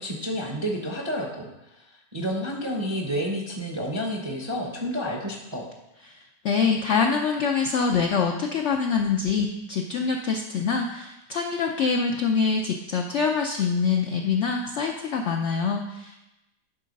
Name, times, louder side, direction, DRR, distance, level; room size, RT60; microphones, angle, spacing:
voice 1, 0.0-1.8 2.1-5.7, equal, 30° right, 0 dB, 0.5 m, -30 dB
voice 2, 6.1-16.2, left 5 dB, 85° left, 2 dB, 0.6 m, -25 dB
9.9 x 3.9 x 5.2 m, 0.94 s
omnidirectional pair, 1.9 m